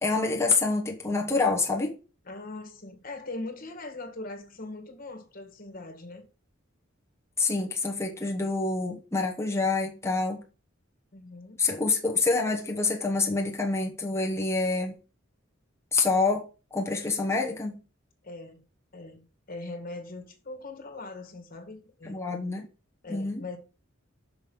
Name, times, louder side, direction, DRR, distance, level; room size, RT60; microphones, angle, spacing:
voice 1, 0.0-2.0 7.4-10.4 11.6-14.9 15.9-17.8 22.0-22.6 23.1-23.4, left 3 dB, 15° left, 1.1 m, -27 dB
voice 2, 2.3-6.3 11.1-11.6 18.2-18.6 18.9-22.2 23.0-23.6, left 2 dB, 45° left, 1.7 m, -41 dB
6.1 x 5.1 x 5.4 m
head